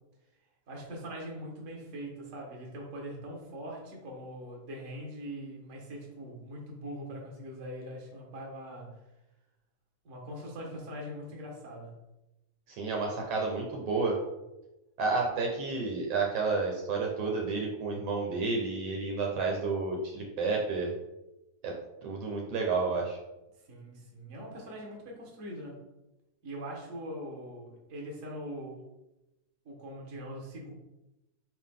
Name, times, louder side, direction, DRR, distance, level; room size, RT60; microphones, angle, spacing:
voice 1, 0.7-9.0 10.0-12.0 23.7-25.8 26.4-28.8 29.6-30.7, equal, 40° right, -2 dB, 1.1 m, -42 dB
voice 2, 12.7-14.2 15.0-20.9 21.6-21.7 22.0-23.2, right 4 dB, 70° right, 0 dB, 1.7 m, -30 dB
5.7 x 4.7 x 3.7 m, 0.96 s
omnidirectional pair, 3.5 m